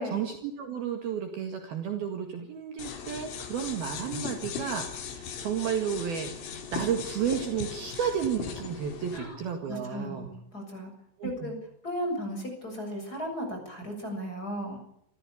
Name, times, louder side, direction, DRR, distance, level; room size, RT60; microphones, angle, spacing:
voice 1, 0.0-10.3 11.2-11.5, right 8 dB, 60° right, 4 dB, 3.5 m, -32 dB
sound 1, 2.8-9.2, left 6 dB, 80° left, 5.0 m, -38 dB
voice 2, 9.7-10.9 11.2-11.5 11.8-14.9, equal, 20° left, 3 dB, 7.4 m, -35 dB
27.5 x 15.0 x 8.5 m, 0.78 s
omnidirectional pair, 5.3 m